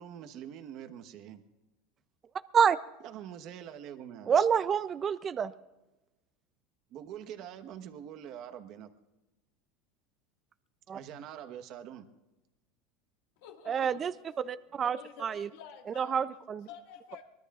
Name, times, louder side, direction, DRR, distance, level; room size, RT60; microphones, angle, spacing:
voice 1, 0.0-1.4 3.0-4.3 6.9-8.9 10.9-12.1, right 9 dB, 45° right, 1.1 m, -44 dB
voice 2, 4.3-5.5 10.9-11.0 13.7-14.1 14.4-15.0 15.2-15.5 16.0-16.7, right 7 dB, 25° right, 0.4 m, -27 dB
voice 3, 13.4-14.2 14.8-16.2 16.7-17.2, left 7 dB, 75° left, 1.9 m, -50 dB
24.0 x 20.5 x 2.4 m
supercardioid pair, 155°, 0 cm